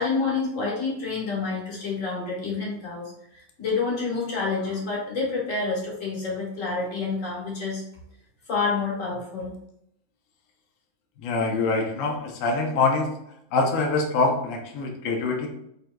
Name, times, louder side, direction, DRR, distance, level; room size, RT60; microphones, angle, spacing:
voice 1, 0.0-3.0 3.3-7.8 8.5-9.5, left 4 dB, 45° left, -4 dB, 1.4 m, -28 dB
voice 2, 11.2-13.1 13.5-15.5, left 3 dB, 70° left, 2 dB, 0.7 m, -24 dB
5.3 x 2.9 x 2.2 m, 0.76 s
omnidirectional pair, 2.1 m